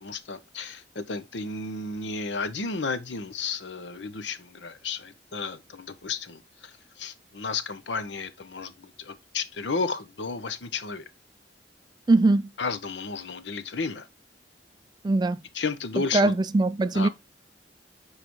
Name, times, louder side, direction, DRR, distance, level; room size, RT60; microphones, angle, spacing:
voice 1, 0.0-11.0 12.6-14.1 15.5-16.3 16.9-17.1, left 4 dB, 75° left, 0.8 m, -33 dB
voice 2, 12.1-12.5 15.0-15.4 16.1-17.1, right 2 dB, 25° right, 0.3 m, -21 dB
7.3 x 4.9 x 3.0 m
head